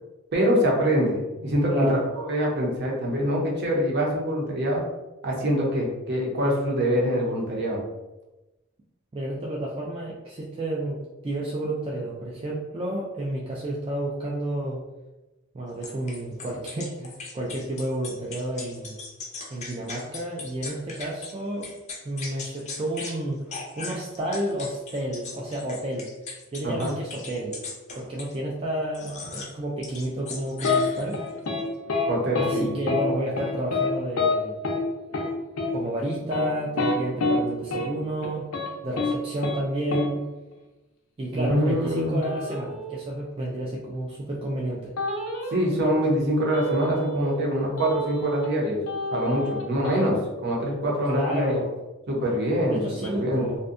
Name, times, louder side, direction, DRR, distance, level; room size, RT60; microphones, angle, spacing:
voice 1, 0.3-4.8 5.2-7.8 26.6-26.9 32.1-32.7 41.3-42.2 45.5-48.8 49.1-50.2 50.4-51.5 52.1-53.5, equal, 55° right, -2 dB, 0.7 m, -24 dB
voice 2, 1.7-2.1 9.1-14.8 15.5-19.0 19.5-21.7 22.0-26.1 26.5-27.6 28.0-31.2 32.3-34.5 35.7-38.5 38.8-40.2 41.2-44.9 51.0-51.7 52.7-53.7, right 1 dB, 25° right, -4 dB, 0.3 m, -31 dB
sound 1, 15.8-21.3 21.6-23.2 23.5-28.4 28.9-29.5 29.8-31.3, left 3 dB, 35° left, 0.5 m, -38 dB
sound 2, 30.6-30.8 31.1-31.6 31.9-32.1 32.3-32.5 32.9-33.0 33.4-33.9 34.2-34.3 34.6-34.8 35.1-35.3 35.6-35.7 36.2-37.4 37.7-37.9 38.2-38.7 39.0-39.1 39.4-39.6 39.9-40.1 42.2-43.0 45.0-45.7 46.5-47.4 47.8-48.6 48.9-50.0, left 3 dB, 90° left, 0.5 m, -28 dB
2.6 x 2.1 x 2.5 m, 1.0 s
head